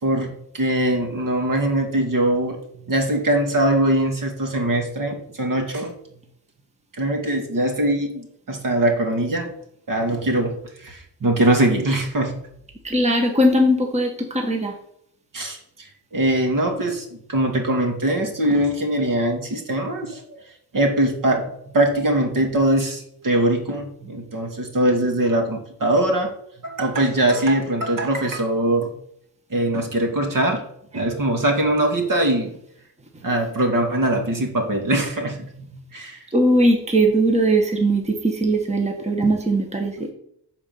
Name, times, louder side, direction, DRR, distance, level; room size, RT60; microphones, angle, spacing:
voice 1, 0.0-5.9 6.9-9.5 9.9-12.4 15.3-20.4 20.7-21.5 21.7-26.3 26.6-28.9 29.5-30.6 30.9-32.6 33.2-36.2, right 1 dB, 50° right, 3 dB, 2.3 m, -22 dB
voice 2, 12.8-14.7 36.3-40.1, right 1 dB, 15° right, 2 dB, 1.5 m, -19 dB
10.0 x 4.4 x 7.0 m, 0.71 s
cardioid pair, 110°, 41 cm